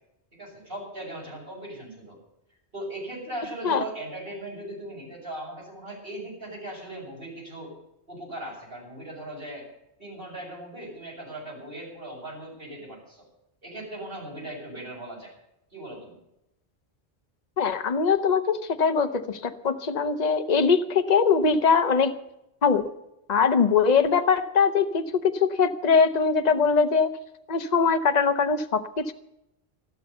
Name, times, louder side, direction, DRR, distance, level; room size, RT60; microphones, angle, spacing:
voice 1, 0.3-2.2 2.7-7.7 8.1-9.7 10.0-13.2 13.6-15.3 15.7-16.2, right 1 dB, 60° right, -2 dB, 7.3 m, -38 dB
voice 2, 17.6-22.1 22.6-22.9 23.3-27.1 27.5-29.1, left 5 dB, 40° left, 8 dB, 1.0 m, -22 dB
14.0 x 12.5 x 6.9 m, 0.85 s
omnidirectional pair, 1.1 m